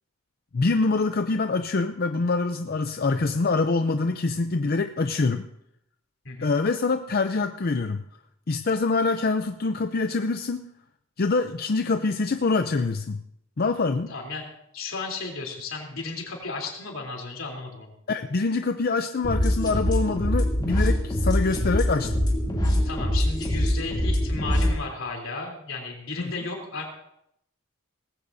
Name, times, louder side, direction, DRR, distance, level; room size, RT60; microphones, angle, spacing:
voice 1, 0.5-5.4 6.4-8.0 8.5-10.6 11.2-13.2 13.6-14.1 18.1-22.3 26.2-26.3, left 3 dB, 50° left, 7 dB, 0.5 m, -25 dB
voice 2, 14.1-17.9 22.8-26.9, left 3 dB, 75° left, 0 dB, 3.4 m, -34 dB
sound 1, 19.2-24.7, equal, 20° left, 2.7 m, -24 dB
19.0 x 15.5 x 2.7 m, 0.77 s
head